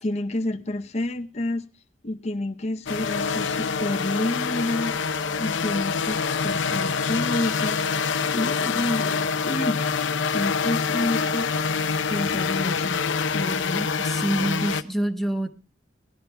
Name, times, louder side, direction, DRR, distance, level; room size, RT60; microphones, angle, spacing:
voice 1, 0.0-1.6 2.0-5.0 5.4-9.9 10.3-11.5 12.1-13.0 13.3-13.8, left 1 dB, 35° left, 6 dB, 0.7 m, -29 dB
sound 1, 2.9-14.8, left 5 dB, 85° left, 0.6 m, -26 dB
voice 2, 13.7-15.5, right 1 dB, ahead, 5 dB, 0.9 m, -27 dB
17.5 x 12.0 x 3.4 m, 0.31 s
head